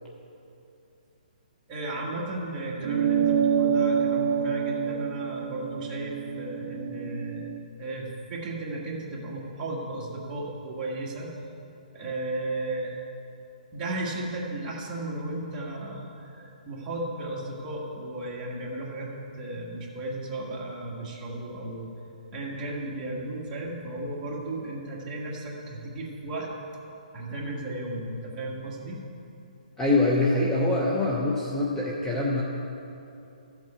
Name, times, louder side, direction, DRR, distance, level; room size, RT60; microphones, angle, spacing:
voice 1, 1.7-7.5 7.8-11.3 11.9-12.9 13.7-21.9 22.3-26.5 27.1-29.0, right 2 dB, 20° right, -4 dB, 1.7 m, -35 dB
sound 1, 2.8-7.6, right 7 dB, 35° right, 0.5 m, -27 dB
voice 2, 29.8-32.4, left 2 dB, 10° left, -4 dB, 0.7 m, -24 dB
14.0 x 7.6 x 4.3 m, 2.8 s
hypercardioid pair, 160°, 5 cm